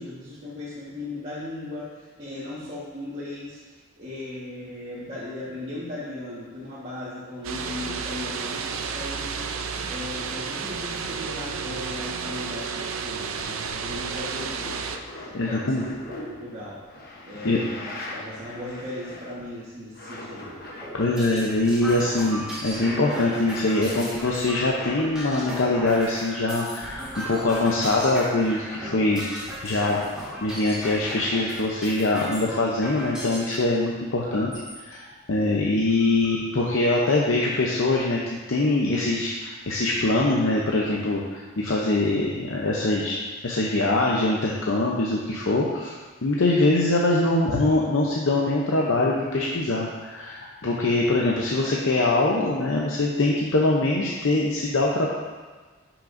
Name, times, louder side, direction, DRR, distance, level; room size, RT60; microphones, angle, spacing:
voice 1, 0.0-9.5 9.8-14.8 15.2-16.8 17.2-20.6 50.8-51.1, left 1 dB, 35° right, -11 dB, 1.5 m, -37 dB
sound 1, 7.4-15.0, right 5 dB, 85° right, 0.5 m, -32 dB
sound 2, 10.7-10.8 11.0-11.1 11.6-12.1 12.7-12.8 13.4-19.6 19.9-21.0 21.6-25.0 25.3-25.8, left 1 dB, 50° left, 1.0 m, -41 dB
voice 2, 15.3-15.8 17.4-17.6 20.9-29.2 29.6-30.0 30.4-34.5 34.8-38.2 38.5-43.2 43.4-45.9 46.2-55.1, left 2 dB, 70° left, -3 dB, 0.7 m, -23 dB
sound 3, 20.7-33.6 34.2-34.8 35.3-35.4 35.7-36.4, equal, 5° right, 2.0 m, -36 dB
9.9 x 6.0 x 2.6 m, 1.4 s
head